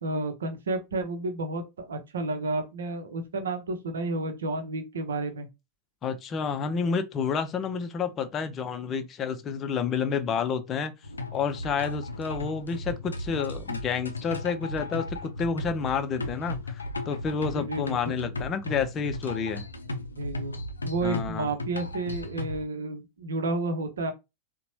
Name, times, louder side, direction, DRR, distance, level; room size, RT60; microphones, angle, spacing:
voice 1, 0.0-5.5 17.6-18.3 20.2-20.6 20.8-24.1, right 2 dB, 65° right, 0.7 m, -31 dB
voice 2, 6.0-10.9 11.3-19.7 21.0-21.5, left 6 dB, 30° left, 0.5 m, -29 dB
sound 1, 11.0-22.6, left 2 dB, 75° left, 0.5 m, -36 dB
3.9 x 2.2 x 3.0 m
figure-of-eight pair, 90°, 0 cm